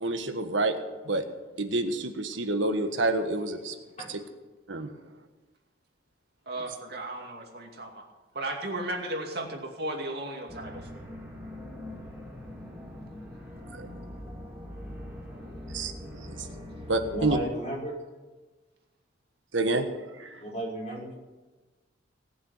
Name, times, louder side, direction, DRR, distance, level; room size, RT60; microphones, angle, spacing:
voice 1, 0.0-0.8 1.0-1.2 1.6-3.7 4.1-4.2 4.7-4.9 13.7-13.9 15.7-16.5 16.9-17.4 19.5-19.9 20.1-20.4, right 2 dB, 80° right, 6 dB, 1.4 m, -28 dB
voice 2, 6.5-8.0 8.3-10.9, right 1 dB, 55° right, 2 dB, 2.5 m, -35 dB
sound 1, 10.5-17.4, left 1 dB, 10° right, 2.4 m, -42 dB
voice 3, 17.1-18.0 20.4-21.1, right 1 dB, 35° left, -4 dB, 6.2 m, -33 dB
18.5 x 7.2 x 9.7 m, 1.2 s
head